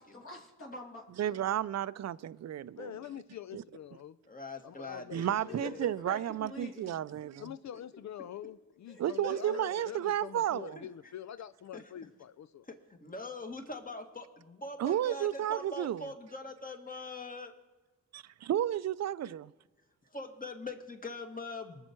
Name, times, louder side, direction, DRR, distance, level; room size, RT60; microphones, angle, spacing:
voice 1, 0.0-1.0 6.0-7.0 8.9-9.6, left 1 dB, 40° left, 2.7 m, -46 dB
voice 2, 1.2-2.9 3.5-3.6 5.1-7.4 9.0-10.8 14.8-16.1 18.5-19.4, right 11 dB, 55° right, 0.5 m, -32 dB
voice 3, 2.8-4.2 4.6-5.9 7.4-12.7, left 10 dB, 60° left, 0.5 m, -45 dB
voice 4, 4.3-5.8 10.8-11.1 11.7-11.9 12.7-12.8 13.0-17.5 20.1-21.9, left 2 dB, 25° left, 1.8 m, -43 dB
20.5 x 7.2 x 4.5 m
cardioid pair, 60°, 32 cm